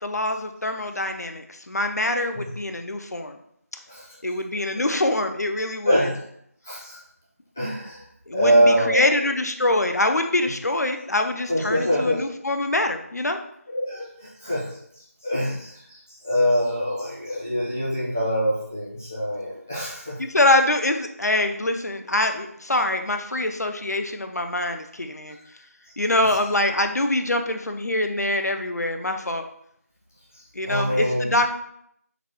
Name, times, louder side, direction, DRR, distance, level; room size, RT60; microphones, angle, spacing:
voice 1, 0.0-3.4 4.2-6.1 8.3-13.4 20.2-25.4 26.0-29.5 30.5-31.6, left 1 dB, 80° left, 6 dB, 0.5 m, -24 dB
voice 2, 6.6-7.0 7.6-8.0 8.3-9.2 11.5-12.2 13.7-14.7 15.2-20.1 30.6-31.3, equal, 10° left, -9 dB, 0.4 m, -24 dB
3.9 x 2.2 x 2.9 m, 0.73 s
figure-of-eight pair, 170°, 9 cm